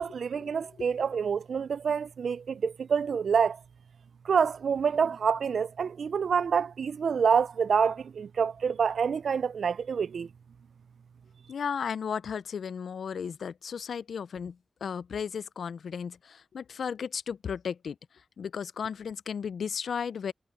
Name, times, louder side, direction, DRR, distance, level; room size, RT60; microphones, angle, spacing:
voice 1, 0.0-3.6 4.3-10.3, right 6 dB, 75° right, 0.3 m, -27 dB
voice 2, 11.5-18.0 18.4-20.3, left 7 dB, 85° left, 0.4 m, -34 dB
wide cardioid pair, 100°, 0 cm